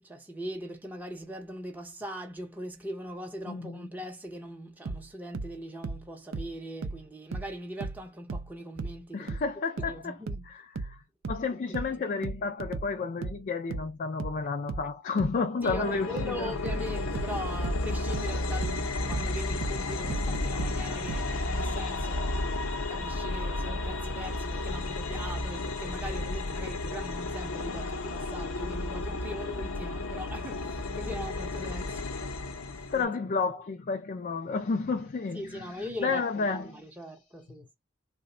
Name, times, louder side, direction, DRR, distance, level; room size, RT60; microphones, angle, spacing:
voice 1, 0.0-9.4 9.8-10.5 11.5-12.0 15.6-22.6 22.9-33.4 35.3-37.7, equal, 10° right, 0.6 m, -41 dB
voice 2, 3.5-3.8 9.1-10.2 10.4-11.0 11.3-16.5 32.9-35.7 36.0-36.8, left 4 dB, 40° left, 0.3 m, -31 dB
sound 1, 4.9-8.0 8.3-21.3, right 3 dB, 70° right, 0.4 m, -37 dB
sound 2, 15.6-33.0, left 2 dB, 75° left, 0.6 m, -32 dB
3.3 x 2.1 x 3.7 m
head